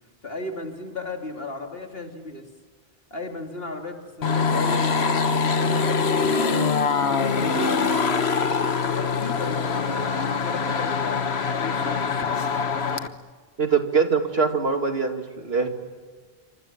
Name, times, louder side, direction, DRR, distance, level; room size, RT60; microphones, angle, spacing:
voice 1, 0.2-2.4 3.1-6.5 7.0-7.8 8.3-12.1, left 2 dB, 70° left, 3 dB, 3.2 m, -35 dB
sound 1, 4.2-13.1, left 5 dB, 85° left, 1.5 m, -23 dB
voice 2, 13.6-15.7, right 5 dB, 75° right, 4 dB, 2.7 m, -23 dB
28.0 x 25.5 x 7.5 m, 1.5 s
omnidirectional pair, 1.0 m